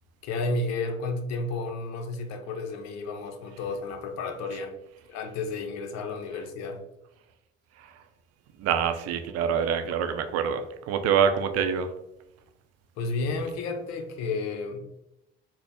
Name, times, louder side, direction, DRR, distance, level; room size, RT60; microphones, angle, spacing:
voice 1, 0.2-4.7 5.1-6.8 13.0-14.8, left 3 dB, 65° left, 5 dB, 0.7 m, -32 dB
voice 2, 8.6-11.9, right 7 dB, 60° right, 8 dB, 0.5 m, -26 dB
4.1 x 2.0 x 3.4 m, 0.86 s
hypercardioid pair, 60°, 30 cm